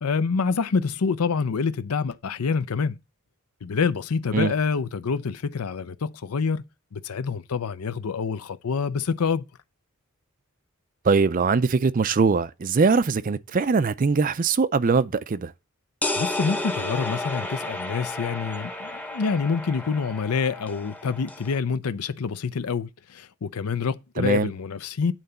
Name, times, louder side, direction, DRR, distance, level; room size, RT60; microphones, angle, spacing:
voice 1, 0.0-3.0 3.6-6.6 6.9-9.4 16.2-25.1, left 5 dB, 80° left, 0.6 m, -27 dB
voice 2, 11.0-15.5 24.2-24.5, right 4 dB, 35° right, 0.4 m, -22 dB
sound 1, 16.0-21.6, left 2 dB, 5° left, 0.8 m, -32 dB
8.9 x 3.9 x 6.7 m
head